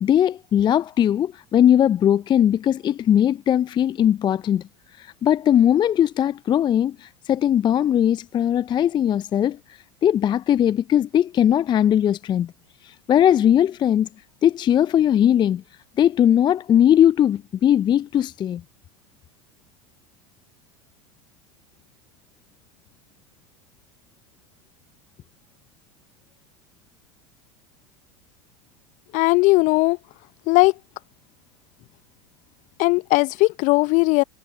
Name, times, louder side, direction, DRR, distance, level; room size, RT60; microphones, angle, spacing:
voice 1, 0.0-4.6 5.0-9.6 10.0-12.5 12.8-14.1 14.4-15.6 16.0-18.6, left 10 dB, 25° left, 0.5 m, -19 dB
voice 2, 29.1-30.0 30.5-30.7 32.8-34.2, left 24 dB, 50° left, 0.8 m, -18 dB
hypercardioid pair, 80°, 17 cm